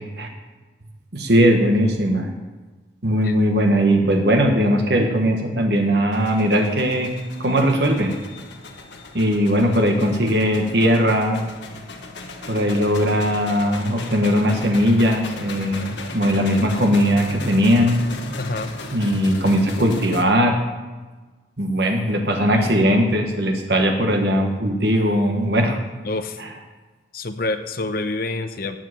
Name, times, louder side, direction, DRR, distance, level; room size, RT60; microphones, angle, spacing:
voice 1, 1.1-2.3 3.0-7.1 7.4-8.1 9.1-11.5 12.5-18.0 18.9-20.5 21.6-25.8, equal, 65° right, 3 dB, 1.4 m, -19 dB
sound 1, 6.1-20.2, left 3 dB, 75° left, 1.4 m, -37 dB
voice 2, 18.4-18.7 22.5-22.8 26.0-26.4 27.1-28.8, left 2 dB, 50° left, 8 dB, 0.8 m, -27 dB
15.0 x 5.0 x 9.1 m, 1.3 s
head